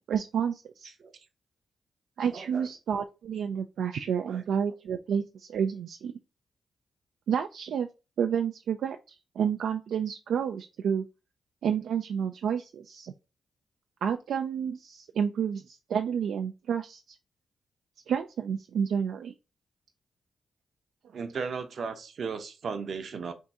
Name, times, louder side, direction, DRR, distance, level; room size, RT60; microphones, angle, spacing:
voice 1, 0.1-0.9 2.2-6.1 7.3-7.9 8.2-11.0 11.6-13.1 14.0-17.2 18.1-19.3, right 7 dB, 80° right, 0.3 m, -30 dB
voice 2, 2.3-2.6 4.3-4.4 21.1-23.3, right 5 dB, 65° right, 0.7 m, -35 dB
3.5 x 2.6 x 4.1 m
cardioid pair, 65°, 0 cm